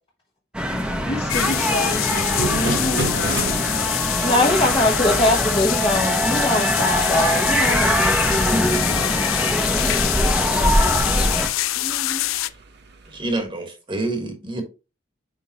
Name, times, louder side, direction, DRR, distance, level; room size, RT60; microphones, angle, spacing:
sound 1, 0.5-11.5, equal, 5° right, 0.8 m, -22 dB
sound 2, 0.7-13.4, right 3 dB, 55° right, 1.0 m, -36 dB
voice 1, 1.0-3.9 4.8-5.2 10.6-10.9, left 2 dB, 55° left, 1.9 m, -30 dB
sound 3, 1.3-12.5, left 15 dB, 85° left, 0.4 m, -25 dB
voice 2, 2.4-3.1 4.2-9.3 11.8-12.3, left 1 dB, 25° left, 1.0 m, -23 dB
voice 3, 13.1-14.6, right 2 dB, 25° right, 1.4 m, -27 dB
9.6 x 3.6 x 2.9 m
head